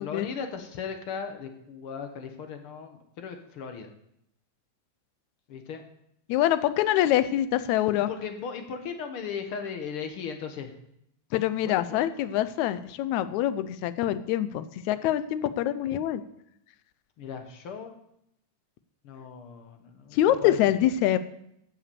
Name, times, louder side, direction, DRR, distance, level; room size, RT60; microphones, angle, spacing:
voice 1, 0.0-3.9 5.5-5.8 7.9-10.7 11.6-12.0 17.2-17.9 19.0-20.9, left 6 dB, 60° left, 6 dB, 1.7 m, -37 dB
voice 2, 6.3-8.1 11.3-16.2 20.1-21.2, left 12 dB, 80° left, 13 dB, 2.0 m, -25 dB
15.0 x 5.8 x 6.9 m, 0.76 s
omnidirectional pair, 3.4 m